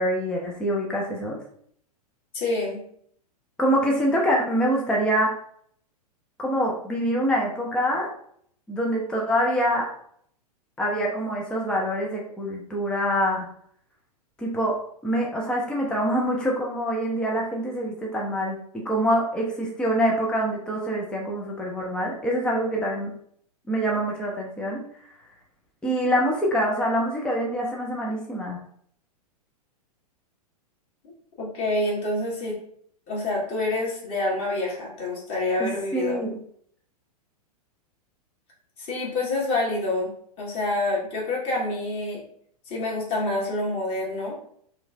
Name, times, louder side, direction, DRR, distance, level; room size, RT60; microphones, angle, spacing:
voice 1, 0.0-1.4 3.6-5.3 6.4-8.1 8.7-9.9 10.8-13.5 14.4-23.1 23.7-24.8 25.8-28.6 35.6-36.4, equal, 5° left, -2 dB, 0.5 m, -25 dB
voice 2, 2.3-2.8 31.4-32.6 33.1-36.3 38.8-40.1 40.4-42.2 42.7-44.3, left 2 dB, 30° left, -4 dB, 1.6 m, -27 dB
3.2 x 3.1 x 3.4 m, 0.65 s
figure-of-eight pair, 100°, 20 cm